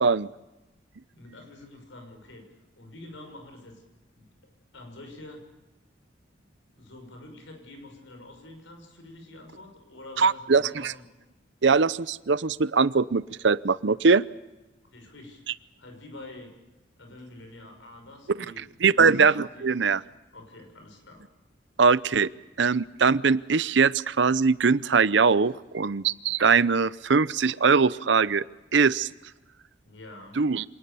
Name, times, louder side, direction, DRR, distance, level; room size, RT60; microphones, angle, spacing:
voice 1, 1.1-2.5 2.8-3.8 4.2-4.3 4.7-5.5 6.6-11.1 14.9-16.6 17.0-19.7 20.3-21.2 29.8-30.4, left 2 dB, 85° left, 4 dB, 6.2 m, -47 dB
voice 2, 10.2-10.9 11.6-14.2 18.8-20.0 21.8-22.3 22.6-28.4 28.7-29.1 30.4-30.6, right 5 dB, 70° right, 18 dB, 0.7 m, -21 dB
26.0 x 19.5 x 7.0 m, 1.0 s
head